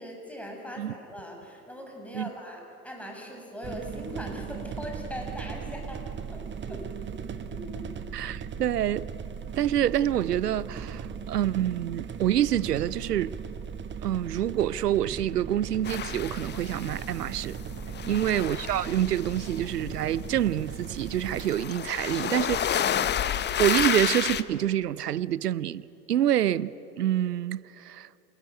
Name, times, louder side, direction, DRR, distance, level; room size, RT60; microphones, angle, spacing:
voice 1, 0.0-6.0 6.3-6.8 7.4-7.8 17.9-18.3 26.2-26.3, equal, 5° left, 6.7 m, -40 dB
pot flapping in resonance caused by temperature, 3.6-21.5, right 7 dB, 25° right, 1.4 m, -38 dB
voice 2, 8.1-9.1 9.5-13.4 14.0-17.6 18.1-23.1 23.6-26.7 27.0-28.1, right 11 dB, 85° right, 0.6 m, -27 dB
sound 1, 15.9-17.5 17.7-24.4, left 9 dB, 25° left, 0.8 m, -31 dB
27.5 x 20.0 x 9.2 m
figure-of-eight pair, 80°, 46 cm